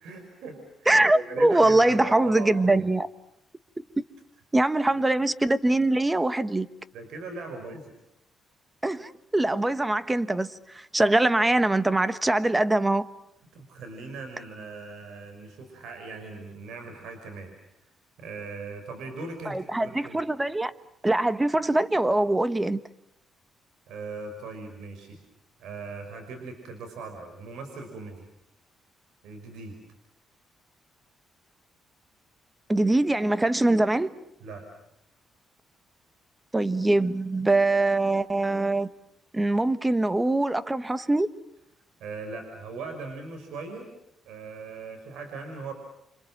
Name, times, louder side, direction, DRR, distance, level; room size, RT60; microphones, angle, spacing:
voice 1, 0.0-2.9 4.8-5.1 6.9-7.9 13.5-17.5 18.2-20.2 23.9-25.2 25.6-28.3 29.2-29.8 34.4-34.6 42.0-43.9 44.2-45.7, right 4 dB, 80° right, 5.6 m, -39 dB
voice 2, 0.9-3.1 4.5-6.7 8.8-13.1 19.5-20.7 21.0-22.8 32.7-34.1 36.5-38.9 39.3-41.3, right 2 dB, 15° right, 1.3 m, -23 dB
30.0 x 26.0 x 7.6 m
cardioid pair, 90°, 0 cm